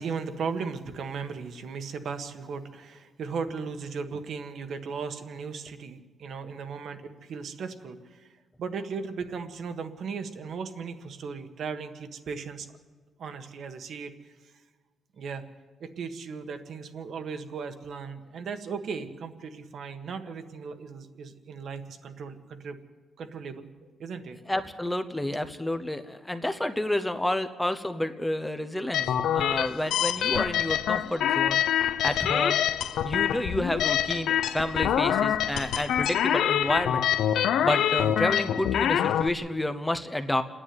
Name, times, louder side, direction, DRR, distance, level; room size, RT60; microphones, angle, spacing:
voice 1, 0.0-8.3 8.6-12.7 13.2-14.3 15.2-15.4 15.8-22.8 23.2-23.7 24.0-24.4, right 5 dB, 55° right, 8 dB, 1.6 m, -37 dB
voice 2, 24.5-31.6 32.0-32.6 33.0-37.0 37.6-40.4, left 1 dB, 5° left, 9 dB, 0.9 m, -30 dB
sound 1, 28.9-39.3, left 10 dB, 85° left, 0.7 m, -25 dB
28.5 x 10.0 x 9.6 m, 1.4 s
cardioid pair, 150°, 0 cm